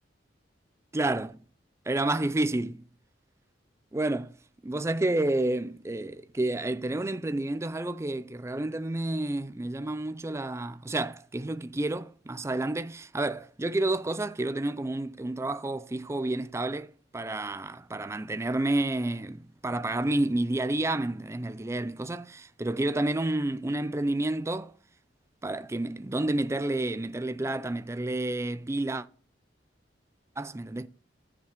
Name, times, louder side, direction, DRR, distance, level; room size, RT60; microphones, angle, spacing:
voice 1, 0.9-1.3 1.9-2.8 3.9-4.3 4.6-24.7 25.4-29.1 30.4-30.9, right 2 dB, 15° right, 0.4 m, -30 dB
14.0 x 7.3 x 3.1 m
head